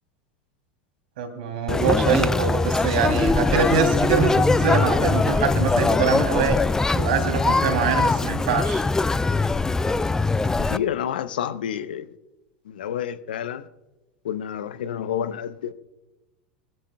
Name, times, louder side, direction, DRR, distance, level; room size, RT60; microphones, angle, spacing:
voice 1, 1.2-6.6 6.9-8.8, right 5 dB, 65° right, 2.9 m, -24 dB
Conversation, 1.7-10.8, left 3 dB, 10° left, 0.4 m, -22 dB
voice 2, 10.7-12.1 12.7-13.6 14.2-15.8, left 9 dB, 70° left, 0.7 m, -29 dB
22.5 x 14.0 x 2.3 m
figure-of-eight pair, 85°, 5 cm